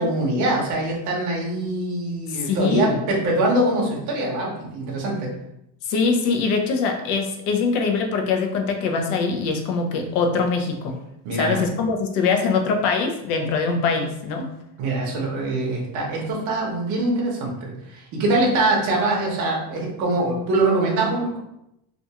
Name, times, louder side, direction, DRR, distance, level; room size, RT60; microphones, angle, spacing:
voice 1, 0.0-5.3 11.2-11.7 14.8-21.4, right 2 dB, 40° right, -2 dB, 0.7 m, -23 dB
voice 2, 2.3-3.0 5.8-11.0 11.3-14.5, left 4 dB, 65° left, 3 dB, 0.6 m, -23 dB
2.4 x 2.2 x 2.8 m, 0.81 s
cardioid pair, 175°, 43 cm